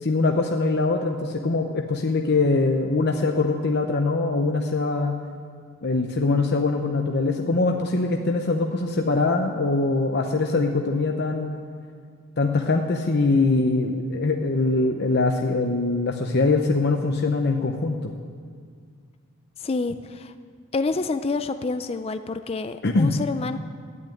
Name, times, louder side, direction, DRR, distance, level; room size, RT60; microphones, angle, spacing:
voice 1, 0.0-5.2 5.8-11.5 12.4-18.1 22.8-23.2, left 3 dB, 50° left, 3 dB, 0.8 m, -23 dB
voice 2, 19.6-20.3 20.7-23.6, left 3 dB, 30° left, 9 dB, 0.4 m, -28 dB
12.5 x 10.0 x 9.1 m, 2.1 s
head